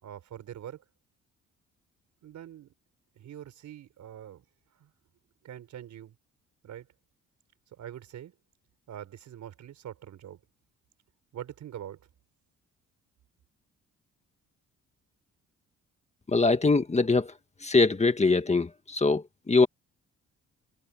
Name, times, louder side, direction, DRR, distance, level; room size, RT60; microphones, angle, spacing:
voice 1, 0.0-0.8 2.2-2.7 3.2-4.4 4.8-4.9 5.4-6.1 6.6-6.9 7.7-8.3 8.9-10.4 11.3-12.0, right 10 dB, 70° right, 4.6 m, -43 dB
voice 2, 16.3-17.3 17.6-19.7, left 3 dB, 20° left, 1.8 m, -23 dB
cardioid pair, 90°, 30 cm